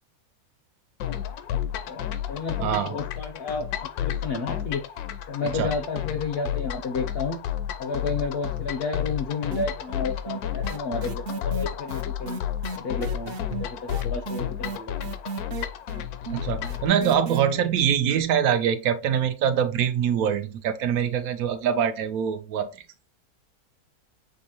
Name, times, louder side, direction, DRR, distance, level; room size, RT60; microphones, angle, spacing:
sound 1, 1.0-16.9, left 10 dB, 85° left, 1.1 m, -32 dB
voice 1, 1.9-3.7 4.0-4.8 5.3-7.4 7.8-12.4 12.8-15.2, left 4 dB, 60° left, 0.6 m, -31 dB
voice 2, 2.6-3.0 5.5-5.7 16.3-22.7, right 8 dB, 75° right, 1.0 m, -24 dB
sound 2, 9.5-10.0 10.3-17.4, right 4 dB, 55° right, 0.7 m, -34 dB
6.1 x 2.6 x 2.8 m
omnidirectional pair, 1.6 m